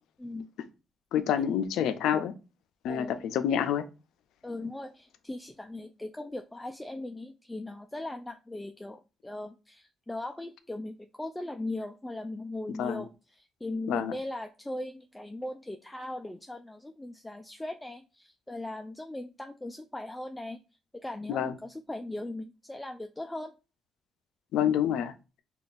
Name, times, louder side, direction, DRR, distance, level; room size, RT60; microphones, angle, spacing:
voice 1, 1.1-2.3 2.8-3.9 12.8-13.0 13.9-14.1 21.3-21.5 24.5-25.1, left 9 dB, 85° left, 0.4 m, -27 dB
voice 2, 2.9-3.4 4.4-20.6 20.9-23.5, left 2 dB, 10° left, 0.3 m, -39 dB
5.2 x 2.4 x 2.4 m
cardioid pair, 90°, 0 cm